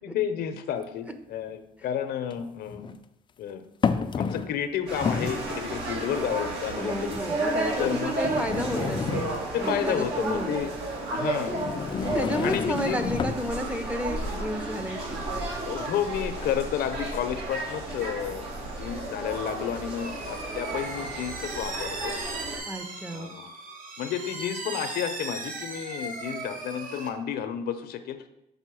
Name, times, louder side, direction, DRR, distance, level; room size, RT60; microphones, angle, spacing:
voice 1, 0.0-2.9 3.4-3.6 3.9-7.2 7.8-8.2 9.5-10.7 11.1-11.8 12.4-13.0 15.6-22.1 23.1-23.5 24.0-28.2, left 9 dB, 70° left, 9 dB, 0.7 m, -31 dB
sound 1, 0.8-0.9 2.3-3.0 3.8-4.6 4.9-5.5 6.3-6.4 7.1-7.2 8.2-9.7 11.5-13.5, left 6 dB, 30° left, 0.4 m, -30 dB
sound 2, 4.9-22.6, right 2 dB, 80° right, 2.2 m, -32 dB
voice 2, 6.8-10.6 12.1-15.2 22.7-23.4, equal, 10° right, 7 dB, 0.6 m, -32 dB
sound 3, 20.0-27.1, right 3 dB, 55° right, 1.1 m, -37 dB
5.6 x 4.0 x 6.1 m, 0.85 s
cardioid pair, 110°, 17 cm